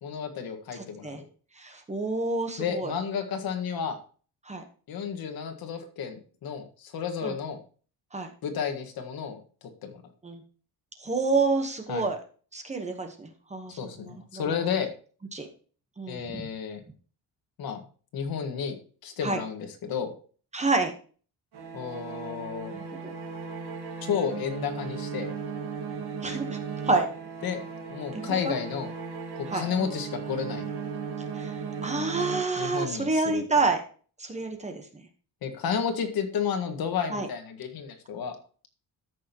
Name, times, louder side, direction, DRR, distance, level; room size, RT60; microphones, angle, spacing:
voice 1, 0.0-1.3 2.6-4.0 4.9-7.6 8.4-10.0 11.9-12.1 13.8-14.9 16.1-16.8 17.6-17.8 18.1-18.7 19.0-20.1 21.7-22.7 24.0-25.3 27.4-27.6 27.9-28.9 29.3-30.7 32.6-33.4 35.4-38.4, left 7 dB, 65° left, 6 dB, 1.7 m, -32 dB
voice 2, 0.8-1.2 1.6-2.9 4.5-4.6 7.2-7.4 8.1-8.3 10.2-10.4 11.0-12.2 12.5-14.5 15.3-15.5 16.0-16.4 19.2-19.4 20.5-20.9 22.7-22.8 26.2-26.6 26.9-27.1 28.1-28.5 29.5-29.6 31.3-33.8 34.2-35.0 37.1-37.3, right 3 dB, 15° right, 5 dB, 1.1 m, -28 dB
sound 1, 21.5-33.0, right 5 dB, 75° right, 2.1 m, -36 dB
13.5 x 6.3 x 2.9 m, 0.40 s
cardioid pair, 180°, 39 cm